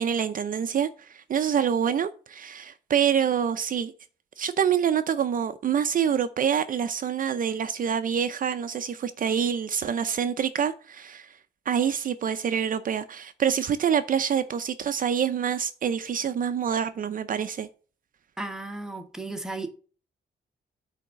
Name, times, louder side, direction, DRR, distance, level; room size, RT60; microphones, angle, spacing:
voice 1, 0.0-3.9 4.4-11.3 11.7-17.7, right 8 dB, 50° right, 0.6 m, -26 dB
voice 2, 18.4-19.7, right 2 dB, 5° right, 1.0 m, -34 dB
8.5 x 3.6 x 6.8 m
wide cardioid pair, 150°, 18 cm